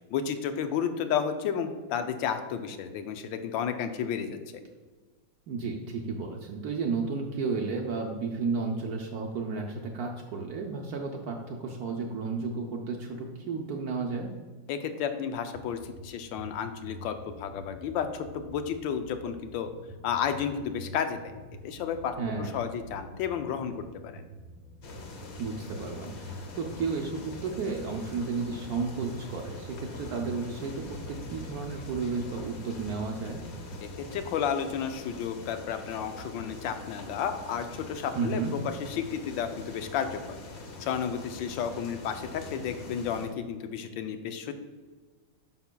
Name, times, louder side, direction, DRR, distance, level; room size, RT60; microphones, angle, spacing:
voice 1, 0.1-4.4 14.7-19.7 20.0-21.2 21.6-24.2 33.8-40.4 40.8-44.5, left 7 dB, 80° left, 8 dB, 1.3 m, -32 dB
voice 2, 5.5-14.3 22.2-22.6 25.4-33.4 38.1-38.5, right 4 dB, 70° right, 2 dB, 0.9 m, -33 dB
sound 1, 15.5-34.3, equal, 35° right, 0.7 m, -48 dB
sound 2, 24.8-43.3, left 2 dB, 55° left, 0.8 m, -43 dB
9.5 x 5.7 x 2.2 m, 1.3 s
omnidirectional pair, 2.1 m